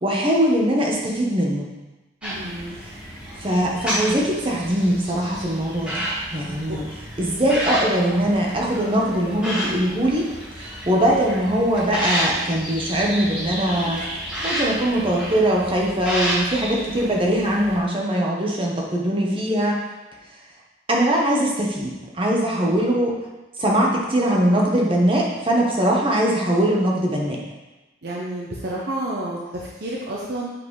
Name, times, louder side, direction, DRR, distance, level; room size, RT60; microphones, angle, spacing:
voice 1, 0.0-1.7 3.4-6.1 6.3-6.8 7.2-10.2 10.5-14.0 14.4-19.8 20.9-23.2 23.6-27.4, right 1 dB, 30° right, -2 dB, 1.2 m, -21 dB
sound 1, 2.2-17.8, equal, 5° right, 1.6 m, -30 dB
voice 2, 2.2-2.8 6.6-6.8 22.3-22.8 28.0-30.5, right 1 dB, 55° right, -3 dB, 0.8 m, -31 dB
7.8 x 5.4 x 3.2 m, 1.1 s
head